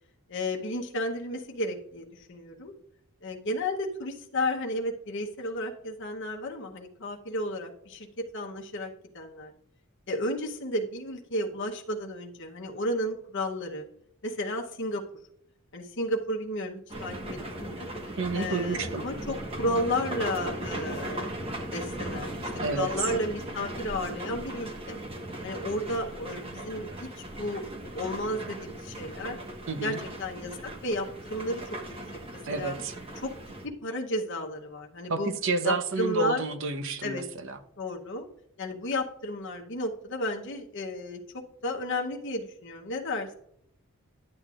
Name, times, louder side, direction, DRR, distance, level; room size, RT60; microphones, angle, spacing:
voice 1, 0.3-2.7 3.2-9.5 10.1-13.8 14.2-15.0 15.7-17.9 18.3-21.3 21.7-25.0 25.4-27.1 27.3-27.6 27.9-29.4 29.8-31.6 32.5-32.8 33.2-33.3 33.6-35.3 35.6-36.4 37.0-37.2 37.8-38.3 38.6-43.3, left 1 dB, 55° left, 0.9 m, -33 dB
sound 1, 16.9-33.7, right 1 dB, 25° right, 1.2 m, -38 dB
voice 2, 18.2-19.0 22.6-22.9 29.7-30.0 32.4-32.9 35.1-37.6, right 3 dB, 60° right, 0.8 m, -29 dB
10.5 x 8.3 x 2.4 m
head